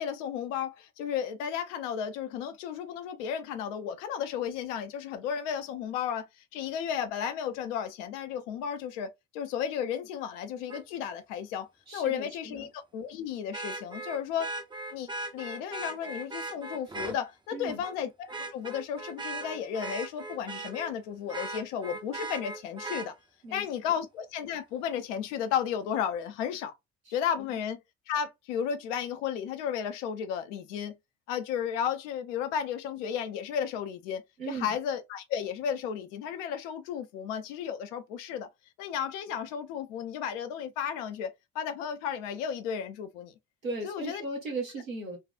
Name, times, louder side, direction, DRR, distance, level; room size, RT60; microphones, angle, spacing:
voice 1, 0.0-14.5 14.9-23.1 23.5-26.7 27.1-27.8 28.1-30.9 31.3-34.2 34.5-38.5 38.8-43.3 43.8-44.2, left 8 dB, 65° left, 0.7 m, -33 dB
Vehicle horn car horn honking, 10.7-10.8 13.5-17.2 17.7-17.9 18.3-20.9 21.3-23.1 24.9-25.0, right 2 dB, 10° right, 0.6 m, -38 dB
voice 2, 11.9-12.7 17.5-17.8 23.4-23.7 27.0-27.6 34.4-34.8 43.6-45.2, right 2 dB, 85° right, 1.2 m, -37 dB
4.0 x 2.4 x 2.2 m
figure-of-eight pair, 55°, 40 cm